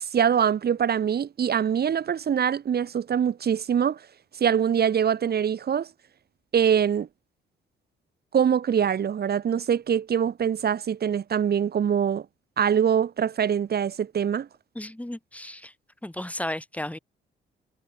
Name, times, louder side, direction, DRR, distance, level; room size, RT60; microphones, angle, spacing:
voice 1, 0.0-4.0 4.4-5.9 6.5-7.1 8.3-12.3 12.6-14.5, right 8 dB, 50° right, 2.5 m, -23 dB
voice 2, 14.8-15.7 16.0-17.0, left 1 dB, 5° left, 3.7 m, -34 dB
cardioid pair, 90°, 20 cm